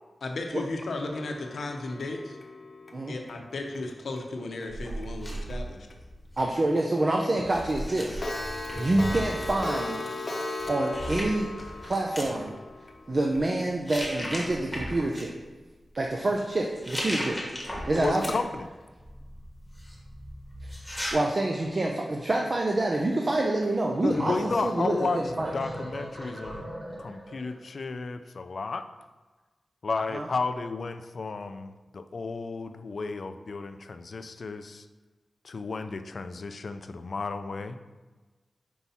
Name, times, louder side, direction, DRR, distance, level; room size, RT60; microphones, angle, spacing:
voice 1, 0.2-2.4 3.1-5.8, left 2 dB, 80° left, 3 dB, 0.8 m, -35 dB
Clock, 1.1-4.2 4.6-4.7 5.0-5.1 5.5-5.6 5.9-6.0 6.4-6.5 6.8-6.9 7.2-7.3 7.6-13.4, left 2 dB, 40° left, 0.8 m, -37 dB
sound 1, 4.7-6.5 7.5-9.6 10.6-10.7 10.9-12.3 13.1-13.4 13.8-15.2 16.6-18.6 19.0-21.1, equal, 5° left, 1.3 m, -36 dB
voice 2, 6.4-8.2 8.8-10.1 10.7-11.5 11.8-12.5 13.1-15.3 15.9-18.4 20.6-20.8 21.1-25.5 30.1-30.3, right 2 dB, 40° right, 0 dB, 0.5 m, -27 dB
voice 3, 18.0-18.7 24.0-26.7 27.0-28.9 29.8-34.9 35.4-37.8, left 4 dB, 55° left, 9 dB, 0.4 m, -33 dB
sound 2, 23.7-27.6, right 1 dB, 20° right, 1.3 m, -38 dB
5.6 x 4.6 x 4.1 m, 1.3 s
wide cardioid pair, 125°, 0 cm